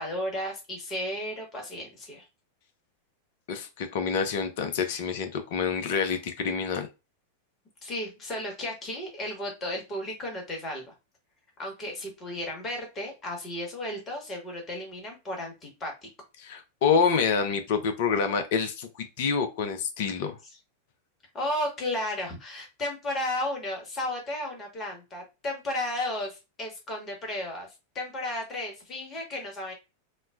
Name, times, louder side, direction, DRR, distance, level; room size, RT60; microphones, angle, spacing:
voice 1, 0.0-2.2 7.8-10.9 11.6-16.1 21.3-27.7 27.9-29.7, left 1 dB, 25° left, 1 dB, 1.2 m, -34 dB
voice 2, 3.5-6.9 16.4-20.4, left 6 dB, 50° left, 8 dB, 0.5 m, -27 dB
3.1 x 2.0 x 2.2 m, 0.26 s
figure-of-eight pair, 90°, 0 cm